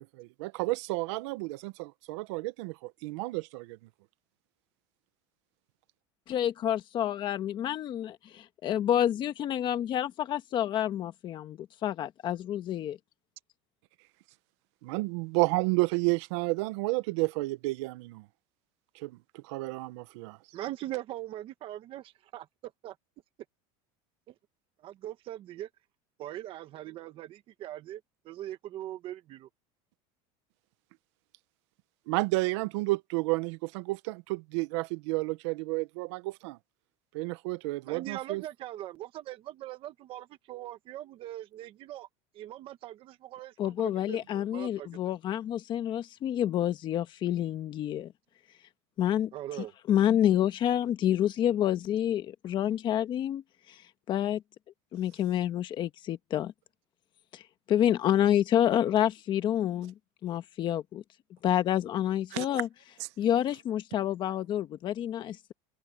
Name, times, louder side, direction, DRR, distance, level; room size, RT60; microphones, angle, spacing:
voice 1, 0.0-3.8 14.8-18.3 18.9-20.4 32.1-36.6 37.1-38.4 62.3-62.5 63.0-63.1, right 24 dB, 70° right, 0.8 m, -31 dB
voice 2, 6.3-13.0 43.6-48.1 49.0-49.3 49.6-53.4 53.7-53.8 54.1-54.4 54.9-56.5 57.3-57.4 57.7-59.9 60.2-61.0 61.4-62.7 63.2-65.5, left 11 dB, 30° left, 1.4 m, -28 dB
voice 3, 20.5-22.5 22.8-22.9 24.3-24.4 24.8-25.7 26.2-29.5 37.8-42.1 42.3-45.0 49.3-49.7, right 13 dB, 35° right, 1.3 m, -41 dB
cardioid pair, 170°, 15 cm